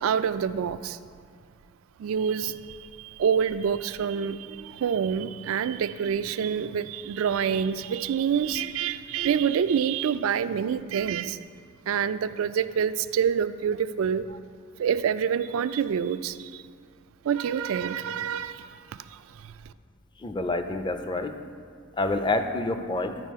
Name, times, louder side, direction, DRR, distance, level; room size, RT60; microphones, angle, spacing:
voice 1, 0.0-1.0 2.0-11.4 11.9-14.4 14.8-16.6 17.2-19.5, right 7 dB, 75° right, 14 dB, 0.3 m, -27 dB
voice 2, 20.2-21.4 22.0-23.2, left 2 dB, 20° left, 7 dB, 0.4 m, -27 dB
11.0 x 4.8 x 4.6 m, 2.1 s
head